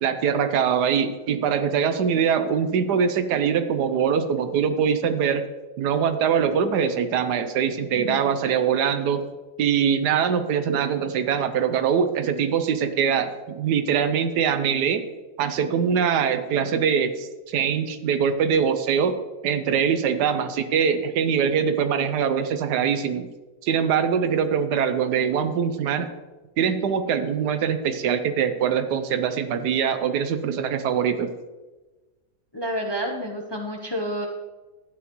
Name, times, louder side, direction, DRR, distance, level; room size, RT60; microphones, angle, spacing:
voice 1, 0.0-5.5 5.8-9.2 9.6-15.0 15.4-19.1 19.4-23.3 23.6-26.1 26.6-31.3, right 7 dB, 90° right, 9 dB, 1.3 m, -23 dB
voice 2, 7.9-8.4 32.5-34.3, equal, 25° left, 1 dB, 0.5 m, -30 dB
12.0 x 8.8 x 3.0 m, 1.2 s
omnidirectional pair, 1.7 m